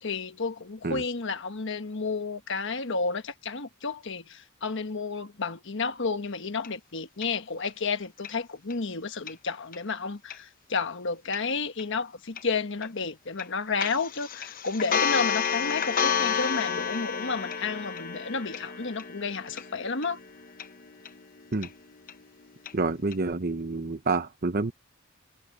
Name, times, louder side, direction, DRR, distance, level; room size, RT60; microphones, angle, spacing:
voice 1, 0.0-20.2, left 4 dB, 65° left, 1.4 m, -31 dB
sound 1, 6.6-6.7 7.2-7.3 7.7-7.8 8.2-8.3 8.7-8.8 9.3-9.4 9.7-9.8 10.3-10.4 10.8-10.9 11.3-11.4 11.8-11.9 12.4-12.5 12.8-12.9 13.4-13.5 13.8-22.7 23.1-23.2, left 7 dB, 45° left, 0.9 m, -31 dB
voice 2, 22.7-24.7, right 3 dB, 50° right, 0.9 m, -28 dB
head